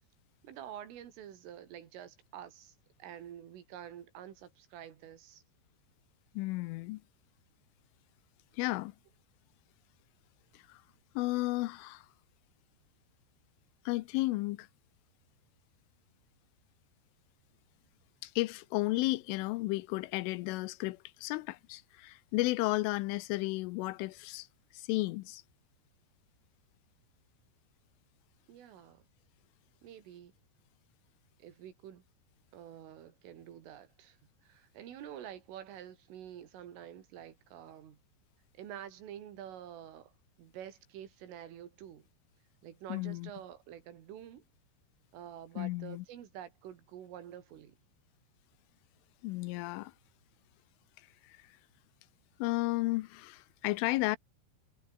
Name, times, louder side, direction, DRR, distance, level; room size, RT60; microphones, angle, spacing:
voice 1, 0.4-2.8 3.0-5.4 28.5-29.0 29.8-30.3 31.4-32.0 32.5-34.2 34.4-38.0 38.6-40.1 40.4-42.1 42.6-44.4 45.1-47.8, right 10 dB, 85° right, 5.4 m, -48 dB
voice 2, 6.4-7.0 8.5-9.0 10.5-10.8 11.2-12.1 13.9-14.7 18.2-24.5 24.7-25.4 42.9-43.3 45.6-46.1 49.2-49.9 51.2-51.5 52.4-54.2, left 20 dB, 90° left, 3.3 m, -33 dB
omnidirectional pair, 5.6 m